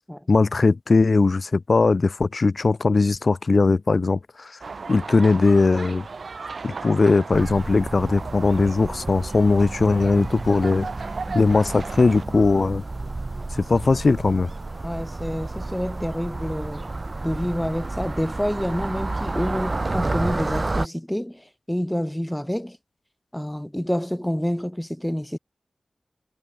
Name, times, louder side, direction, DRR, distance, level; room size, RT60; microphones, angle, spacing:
voice 1, 0.3-4.5 4.9-6.0 6.6-10.9 11.3-12.8 13.5-14.5, left 3 dB, 60° left, 0.4 m, -19 dB
sound 1, 4.6-12.3, right 4 dB, 75° right, 2.2 m, -36 dB
sound 2, 7.3-20.9, right 2 dB, 45° right, 0.5 m, -31 dB
voice 2, 14.8-16.9 17.2-22.8 23.3-25.4, equal, 5° left, 0.5 m, -28 dB
wide cardioid pair, 60°, 0 cm